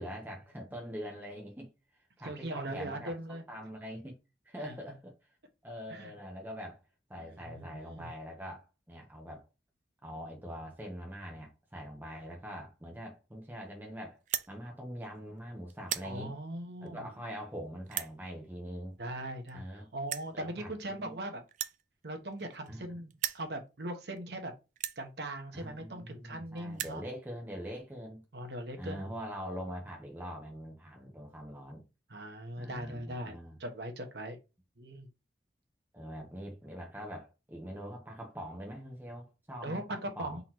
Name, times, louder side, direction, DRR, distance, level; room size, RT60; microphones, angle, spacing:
voice 1, 0.0-1.7 2.2-4.2 4.4-5.1 5.6-6.8 7.1-9.4 10.0-14.2 14.5-16.3 16.8-19.0 19.5-19.9 20.3-21.2 22.7-23.0 25.5-28.2 28.8-31.8 32.6-33.6 35.9-40.4, equal, 10° right, 0.9 m, -43 dB
voice 2, 2.2-3.4 5.9-6.1 7.2-8.1 16.0-17.1 19.0-21.4 22.0-24.5 25.0-27.0 28.3-29.1 32.1-34.4 34.8-35.1 39.6-40.4, right 1 dB, 75° right, 1.0 m, -40 dB
sound 1, 14.2-14.5 15.2-15.4 15.7-16.1 16.9-17.0 17.9-18.1 19.2-19.3 19.5-19.6 20.1-20.3 21.5-22.8 23.1-23.5 24.2-24.3 24.8-25.0 25.9-26.0 26.2-26.3 26.6-27.0, right 11 dB, 45° right, 0.3 m, -37 dB
3.9 x 3.1 x 4.4 m
head